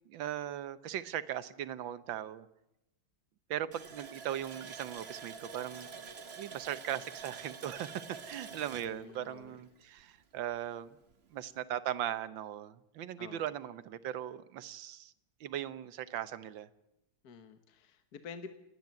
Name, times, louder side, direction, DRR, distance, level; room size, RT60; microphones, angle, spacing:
voice 1, 0.1-2.5 3.5-5.9 6.4-11.0 11.3-15.1 15.4-16.7, right 11 dB, 75° right, 14 dB, 1.7 m, -39 dB
Water tap faucet, 3.7-10.2 10.5-10.6 11.1-11.2, right 5 dB, 35° right, 1.5 m, -47 dB
voice 2, 8.9-9.6 13.2-13.5 17.2-18.5, left 6 dB, 55° left, 9 dB, 1.7 m, -49 dB
29.0 x 10.5 x 9.5 m, 0.88 s
omnidirectional pair, 2.2 m